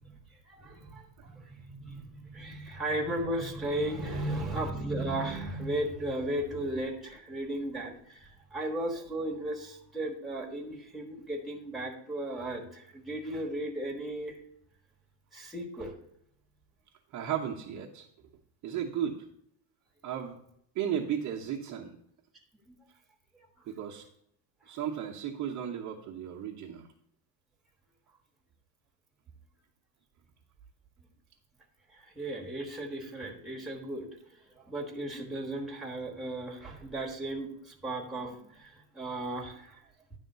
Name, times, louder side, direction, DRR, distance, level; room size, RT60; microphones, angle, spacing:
voice 1, 0.0-14.4 15.3-15.9 22.7-22.8 31.9-39.8, right 1 dB, ahead, -1 dB, 1.3 m, -36 dB
voice 2, 17.1-18.1 18.6-19.3 20.0-20.4 20.7-22.0 23.7-24.0 24.7-26.9, right 9 dB, 40° right, -1 dB, 0.8 m, -34 dB
10.0 x 3.6 x 6.6 m, 0.71 s
cardioid pair, 155°, 47 cm